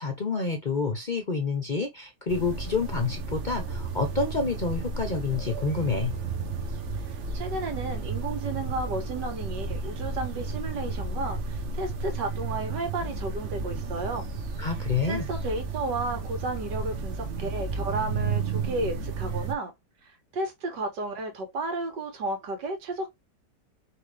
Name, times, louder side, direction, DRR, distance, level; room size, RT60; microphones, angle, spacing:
voice 1, 0.0-6.1 14.6-15.3, left 4 dB, 45° left, 0.6 m, -28 dB
sound 1, 2.3-19.5, right 4 dB, 55° right, 0.9 m, -33 dB
voice 2, 7.0-14.3 15.1-19.7 20.3-23.1, right 2 dB, 85° right, 1.9 m, -33 dB
5.0 x 3.3 x 3.3 m
omnidirectional pair, 1.8 m